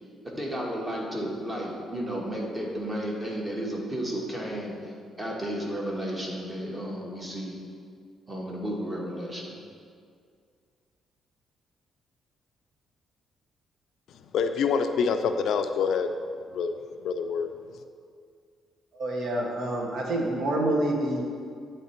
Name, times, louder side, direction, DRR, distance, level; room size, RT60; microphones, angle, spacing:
voice 1, 0.2-4.8 5.2-7.6 8.3-9.6, equal, 20° right, -2 dB, 1.4 m, -33 dB
voice 2, 14.3-16.1 16.5-16.8 17.0-17.5, left 6 dB, 75° left, 7 dB, 0.4 m, -26 dB
voice 3, 18.9-21.2, right 1 dB, 65° right, 0 dB, 1.1 m, -27 dB
8.6 x 3.3 x 4.3 m, 2.2 s
cardioid pair, 90°, 0 cm